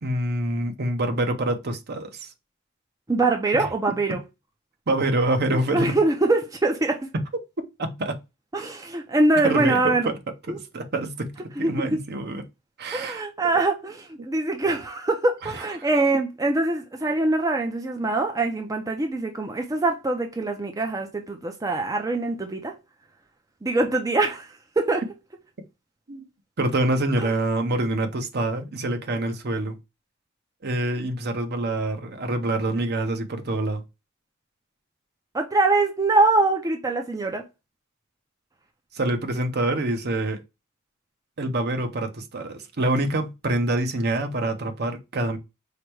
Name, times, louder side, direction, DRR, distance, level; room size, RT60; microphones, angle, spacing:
voice 1, 0.0-2.3 3.5-4.2 4.9-6.0 7.8-8.2 9.4-10.2 10.5-12.4 12.8-13.2 15.4-15.5 15.8-15.9 26.1-26.2 26.6-29.8 30.6-33.8 38.9-40.4 41.4-45.4, right 2 dB, 50° right, 0.8 m, -26 dB
voice 2, 3.1-4.2 5.5-7.1 8.5-10.1 10.5-10.6 11.6-12.0 12.9-22.7 23.6-24.5 24.8-25.0 27.2-27.3 35.3-37.4, right 2 dB, 15° right, 0.5 m, -23 dB
4.9 x 2.1 x 4.5 m
head